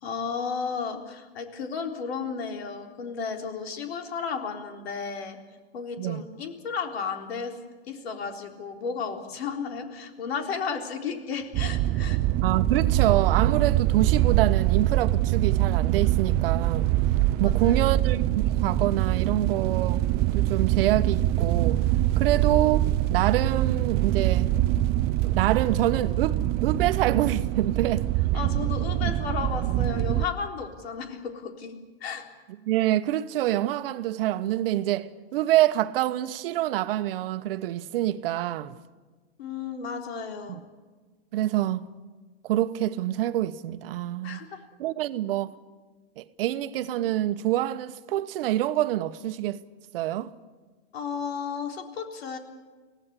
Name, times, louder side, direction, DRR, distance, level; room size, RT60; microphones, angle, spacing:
voice 1, 0.0-5.4 5.7-7.6 7.9-12.2 17.4-17.9 28.3-31.7 32.0-32.3 39.4-40.6 44.2-44.5 50.9-52.4, left 5 dB, 80° left, 3.8 m, -33 dB
sound 1, 11.5-30.3, right 14 dB, 30° right, 0.6 m, -24 dB
voice 2, 12.4-16.9 17.4-20.0 20.3-21.8 22.2-24.6 25.2-28.1 32.6-38.8 40.5-40.6 41.3-41.9 42.4-44.4 44.8-45.5 46.2-49.6 49.9-50.3, right 13 dB, 65° right, 1.1 m, -26 dB
24.0 x 17.5 x 8.4 m
supercardioid pair, 135°, 31 cm